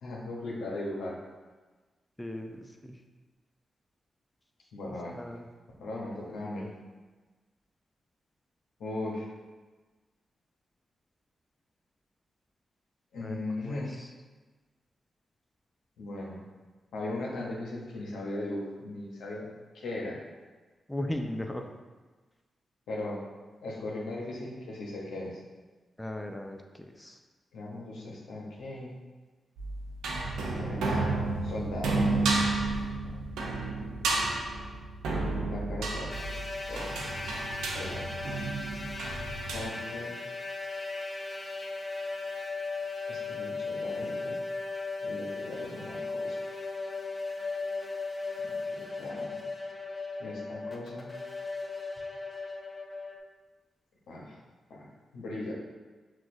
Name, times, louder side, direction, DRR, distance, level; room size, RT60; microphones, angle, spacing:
voice 1, 0.0-1.2 4.7-5.1 5.8-6.7 8.8-9.3 13.1-14.0 16.0-16.4 16.9-20.2 22.9-23.2 23.6-25.4 27.5-29.0 30.6-31.0 31.4-33.3 34.1-34.2 35.5-36.1 36.7-37.1 37.7-38.1 39.5-40.2 43.1-44.4 45.0-46.5 48.4-49.4 50.2-51.1 54.1-54.4 54.7-54.9 55.1-55.5, left 2 dB, 85° left, -4 dB, 0.8 m, -38 dB
voice 2, 2.2-3.0 5.1-5.5 6.4-6.7 13.2-14.1 20.9-21.7 26.0-27.2, left 1 dB, 15° left, 4 dB, 0.5 m, -38 dB
sound 1, 29.6-39.7, right 2 dB, 90° right, 0.5 m, -31 dB
sound 2, 36.1-53.2, left 3 dB, 40° left, 0.9 m, -37 dB
5.9 x 2.4 x 2.6 m, 1.3 s
supercardioid pair, 45°, 0 cm